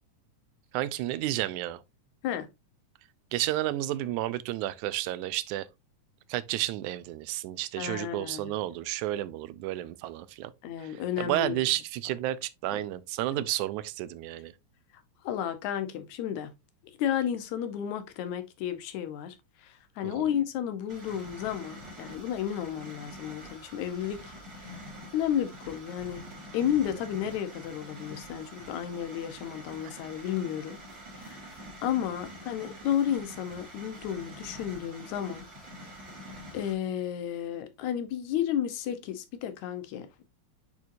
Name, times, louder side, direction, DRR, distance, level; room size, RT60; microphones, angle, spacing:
voice 1, 0.7-1.8 3.3-5.7 6.3-10.5 10.8-14.5 20.0-20.3, right 15 dB, 80° right, 1.9 m, -31 dB
voice 2, 7.8-8.5 10.6-11.6 15.2-16.5 17.0-24.2 24.6-24.8 25.1-26.2 26.5-30.8 31.1-31.5 31.8-35.5 35.8-35.9 36.5-40.2, left 10 dB, 75° left, 2.2 m, -32 dB
sound 1, 20.9-36.7, equal, 35° right, 3.2 m, -46 dB
8.4 x 4.4 x 2.6 m
omnidirectional pair, 3.5 m